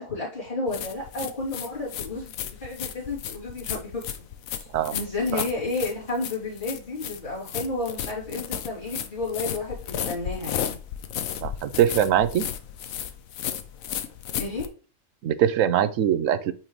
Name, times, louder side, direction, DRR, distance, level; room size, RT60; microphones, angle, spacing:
voice 1, 0.0-2.3 2.6-4.0 4.5-4.7 4.9-10.8 14.4-14.7, left 2 dB, 35° left, -6 dB, 3.1 m, -31 dB
sound 1, 0.7-14.7, left 9 dB, 90° left, 1.1 m, -34 dB
voice 2, 11.4-12.5 15.2-16.5, right 10 dB, 80° right, 13 dB, 1.0 m, -22 dB
8.8 x 4.5 x 3.1 m, 0.37 s
omnidirectional pair, 1.4 m